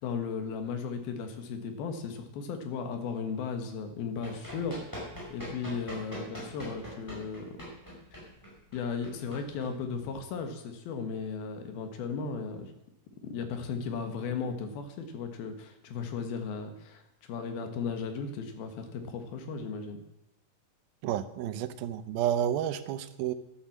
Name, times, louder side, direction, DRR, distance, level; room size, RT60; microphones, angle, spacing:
voice 1, 0.0-4.8 5.3-7.5 8.7-12.7 13.2-17.0 17.3-20.0, left 5 dB, 85° left, 6 dB, 3.4 m, -36 dB
Run, 4.2-10.3, equal, 5° left, 5.1 m, -43 dB
voice 2, 21.0-23.3, right 10 dB, 85° right, 12 dB, 2.6 m, -30 dB
11.0 x 11.0 x 7.3 m, 0.89 s
omnidirectional pair, 4.2 m